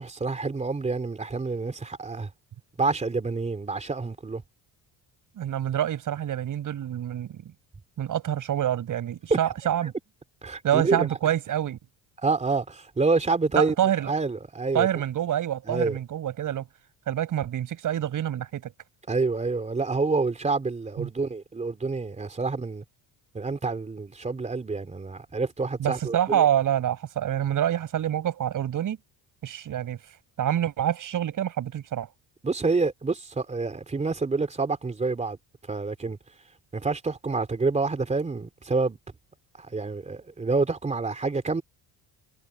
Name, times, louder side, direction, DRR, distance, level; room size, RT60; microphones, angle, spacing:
voice 1, 0.0-2.3 2.8-4.4 9.3-9.4 9.8-9.9 10.4-11.1 12.2-13.7 14.1-14.9 15.7-16.0 19.1-22.8 23.3-26.5 32.4-35.4 35.7-36.2 36.7-39.0 39.6-41.6, right 3 dB, 15° right, 3.2 m, -27 dB
voice 2, 5.4-7.4 8.0-9.9 10.6-11.8 13.5-14.1 14.7-16.6 17.1-18.7 21.0-21.1 25.8-29.0 29.4-30.0 30.4-32.1, right 10 dB, 45° right, 7.5 m, -26 dB
cardioid pair, 175°, 43 cm